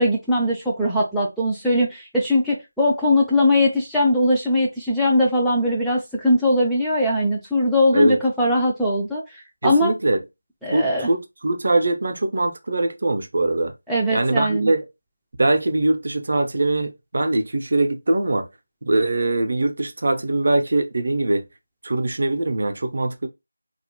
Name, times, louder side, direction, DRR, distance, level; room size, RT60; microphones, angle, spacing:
voice 1, 0.0-9.2 9.6-9.9 10.6-11.1 13.9-14.7, left 1 dB, ahead, 0.3 m, -20 dB
voice 2, 9.6-10.2 10.7-13.7 14.1-14.8 15.4-18.5 18.8-21.4 21.8-23.3, right 2 dB, 55° right, 0.5 m, -22 dB
2.3 x 2.0 x 2.9 m
figure-of-eight pair, 170°, 0 cm